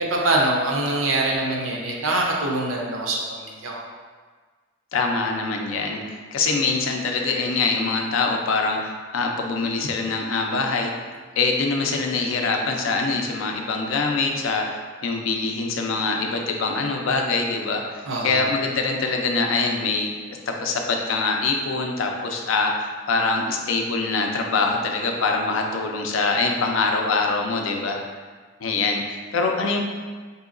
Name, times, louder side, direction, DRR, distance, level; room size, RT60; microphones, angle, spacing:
voice 1, 0.0-3.8 18.1-18.4, right 2 dB, 85° right, -1 dB, 0.6 m, -24 dB
voice 2, 4.9-10.9 11.4-28.0 28.6-29.8, left 3 dB, 80° left, 2 dB, 0.4 m, -24 dB
3.7 x 2.7 x 2.5 m, 1.5 s
head